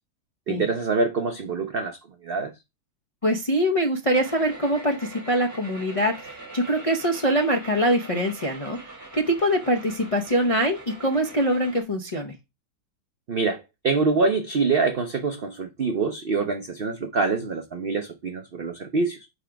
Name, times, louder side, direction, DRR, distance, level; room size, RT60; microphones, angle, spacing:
voice 1, 0.5-2.0 2.2-2.5 13.3-19.3, right 4 dB, 90° right, 0.5 m, -25 dB
voice 2, 3.2-8.8 9.1-12.3, equal, 45° left, 0.4 m, -23 dB
sound 1, 4.1-11.8, right 3 dB, 10° right, 2.5 m, -42 dB
5.0 x 4.1 x 5.7 m
omnidirectional pair, 1.8 m